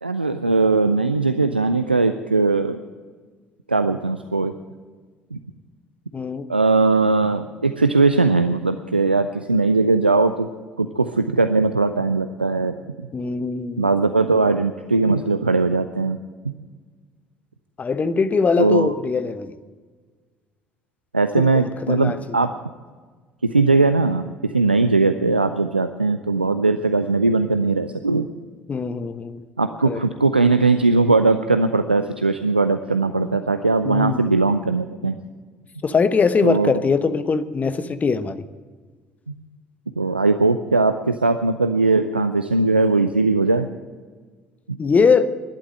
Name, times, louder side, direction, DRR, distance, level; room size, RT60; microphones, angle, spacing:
voice 1, 0.0-2.8 3.7-4.5 5.3-5.4 6.5-10.5 10.8-12.7 13.8-16.2 18.6-18.9 21.1-22.5 23.4-28.3 29.6-35.2 36.4-36.7 40.0-43.7 44.7-44.8, right 3 dB, 85° right, 9 dB, 0.4 m, -19 dB
voice 2, 6.1-6.4 13.1-13.9 17.8-19.5 21.4-21.5 21.9-22.2 28.7-29.4 29.8-30.0 33.8-34.3 35.8-38.4 44.8-45.3, left 5 dB, 30° left, 12 dB, 1.0 m, -21 dB
12.0 x 11.5 x 8.8 m, 1.4 s
figure-of-eight pair, 55°, 5 cm